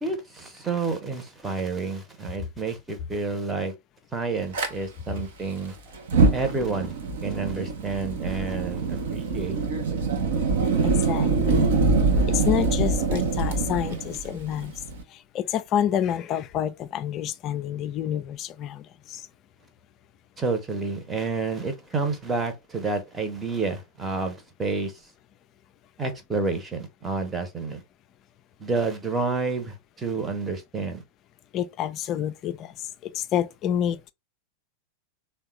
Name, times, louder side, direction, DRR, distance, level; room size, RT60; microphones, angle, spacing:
voice 1, 0.0-3.7 4.1-5.8 6.3-6.9 7.2-9.6 20.4-24.9 26.0-27.8 28.6-31.0, right 4 dB, 15° right, 0.8 m, -29 dB
Fire, 4.5-4.7 6.0-15.0, right 4 dB, 55° right, 0.6 m, -24 dB
voice 2, 10.8-11.7 12.3-14.7 15.1-19.3 31.5-34.1, left 10 dB, 35° left, 0.3 m, -28 dB
3.5 x 2.2 x 3.0 m
figure-of-eight pair, 90°, 0 cm